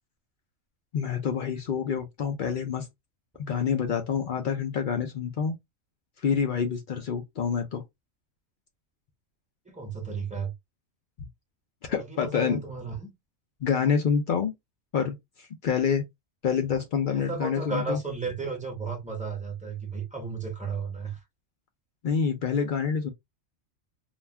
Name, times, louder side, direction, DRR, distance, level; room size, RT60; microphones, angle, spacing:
voice 1, 0.9-2.9 3.5-5.6 6.2-7.8 11.9-12.6 13.6-14.5 14.9-16.0 16.4-18.0 22.0-23.1, left 6 dB, 60° left, 0.5 m, -27 dB
voice 2, 9.6-10.5 11.9-13.1 17.1-21.2, right 4 dB, 5° right, 0.7 m, -34 dB
2.4 x 2.2 x 3.3 m
omnidirectional pair, 1.3 m